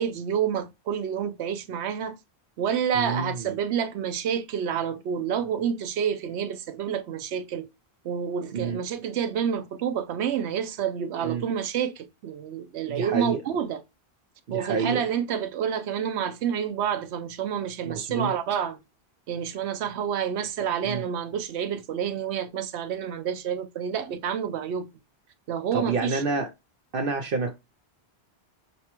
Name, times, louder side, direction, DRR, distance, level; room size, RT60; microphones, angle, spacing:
voice 1, 0.0-2.2 2.6-7.7 8.0-13.8 14.5-18.8 19.3-24.9 25.5-26.2, right 8 dB, 90° right, 0.9 m, -28 dB
voice 2, 3.0-3.3 8.5-8.8 11.2-11.4 12.9-13.4 14.5-15.0 17.8-18.3 20.8-21.0 25.7-26.5 26.9-27.5, right 4 dB, 60° right, 0.8 m, -28 dB
6.5 x 2.2 x 2.9 m
omnidirectional pair, 1.1 m